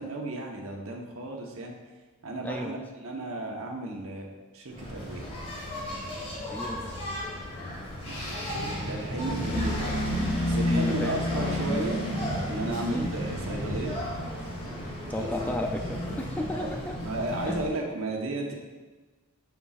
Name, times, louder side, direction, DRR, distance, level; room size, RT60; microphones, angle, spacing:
voice 1, 0.0-1.7 2.2-2.8 3.0-4.3 4.5-5.2 7.6-9.9 10.5-12.0 12.5-14.0 15.0-15.3 16.4-16.7 17.0-18.5, right 2 dB, 65° right, 0 dB, 1.1 m, -34 dB
voice 2, 2.4-2.8 6.5-6.9 10.7-11.2 12.9-13.1 15.1-17.0 17.5-17.7, left 1 dB, 5° left, 3 dB, 0.4 m, -33 dB
Engine, 4.7-17.7, left 1 dB, 30° left, 1.8 m, -32 dB
7.1 x 6.9 x 2.5 m, 1.3 s
head